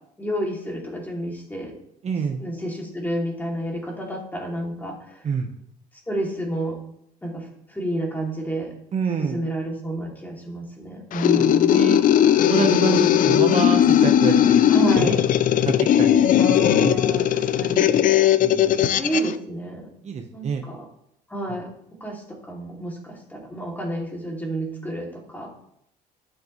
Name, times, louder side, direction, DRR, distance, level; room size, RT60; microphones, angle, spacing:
voice 1, 0.2-1.7 2.4-5.2 6.1-6.8 7.2-8.7 9.2-11.8 14.7-15.2 16.4-18.0 18.9-19.9 20.3-20.9 21.3-21.7 22.0-25.5, right 1 dB, 10° left, -1 dB, 2.8 m, -30 dB
voice 2, 2.0-2.4 5.2-5.5 8.9-9.4 11.3-12.0 12.5-14.7 14.9-15.2 15.6-17.0 18.4-18.7 20.0-20.6, right 6 dB, 40° right, 4 dB, 1.2 m, -27 dB
sound 1, 11.1-19.3, left 10 dB, 55° left, 0.5 m, -18 dB
12.0 x 8.0 x 3.2 m, 0.75 s
cardioid pair, 110°, 17 cm